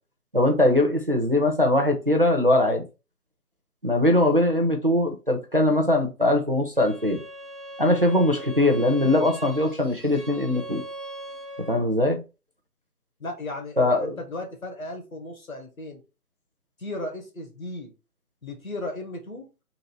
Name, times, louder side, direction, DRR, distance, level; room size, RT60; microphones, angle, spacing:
voice 1, 0.3-2.8 3.8-7.2 7.8-10.8 11.7-12.2 13.8-14.2, left 1 dB, 40° right, 0.6 m, -21 dB
Bowed string instrument, 6.7-11.9, right 1 dB, ahead, 0.6 m, -40 dB
voice 2, 13.2-16.0 16.8-17.9 18.4-19.5, left 2 dB, 60° left, 1.5 m, -35 dB
3.9 x 2.5 x 4.5 m
figure-of-eight pair, 160°, 46 cm